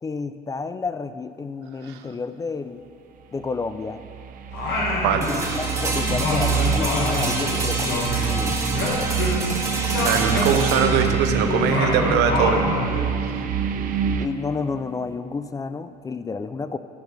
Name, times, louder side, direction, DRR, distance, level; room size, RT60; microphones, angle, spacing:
voice 1, 0.0-2.8 3.3-4.0 5.1-8.6 14.2-16.8, left 4 dB, 20° left, 11 dB, 0.3 m, -30 dB
sound 1, 3.6-14.3, right 8 dB, 55° right, 0.6 m, -27 dB
Singing, 4.5-5.7 5.9-9.6 9.9-13.1, left 3 dB, 80° left, 1.8 m, -27 dB
sound 2, 5.2-15.1, right 2 dB, 20° right, 1.5 m, -29 dB
voice 2, 10.0-12.6, right 7 dB, 90° right, 7 dB, 0.7 m, -22 dB
11.5 x 4.4 x 6.3 m, 2.6 s
cardioid pair, 110°, 17 cm